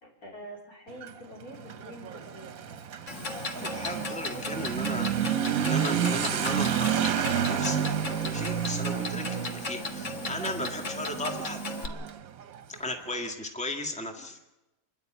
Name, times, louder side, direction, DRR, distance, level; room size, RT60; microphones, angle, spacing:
voice 1, 0.0-2.5 4.3-4.5, equal, 85° left, -1 dB, 4.7 m, -46 dB
Motorcycle / Accelerating revving vroom, 0.9-13.2, right 9 dB, 70° right, 1.3 m, -31 dB
Clock, 3.1-11.9, left 4 dB, 55° left, 1.8 m, -37 dB
voice 2, 3.5-5.1 5.6-7.8 8.2-11.6 12.8-14.4, left 1 dB, 5° left, 3 dB, 1.7 m, -36 dB
27.5 x 11.0 x 9.1 m, 1.0 s
omnidirectional pair, 1.5 m